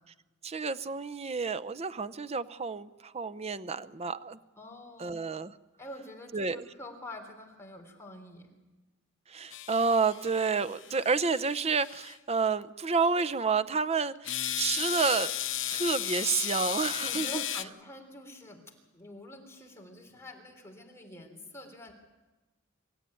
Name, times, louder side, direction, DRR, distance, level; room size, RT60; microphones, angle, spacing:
voice 1, 0.4-4.4 5.0-5.5 6.3-6.6 9.3-15.3 15.7-17.4, right 4 dB, 30° right, 13 dB, 0.6 m, -30 dB
voice 2, 4.6-5.2 5.8-8.5 17.1-18.6 18.9-21.9, left 1 dB, 15° left, 2 dB, 3.4 m, -46 dB
sound 1, 9.5-12.1 14.2-17.6, left 12 dB, 65° left, 0.8 m, -35 dB
25.5 x 14.5 x 9.6 m, 1.1 s
head